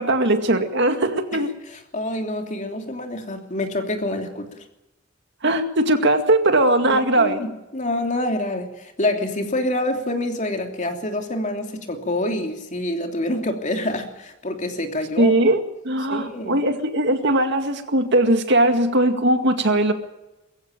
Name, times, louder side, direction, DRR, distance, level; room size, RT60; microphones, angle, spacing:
voice 1, 0.0-1.5 5.4-7.4 15.2-19.9, right 1 dB, 55° right, 7 dB, 2.1 m, -19 dB
voice 2, 1.7-4.5 6.9-15.4 16.1-16.6, left 1 dB, 35° left, 4 dB, 3.0 m, -27 dB
22.5 x 15.0 x 9.1 m, 0.98 s
head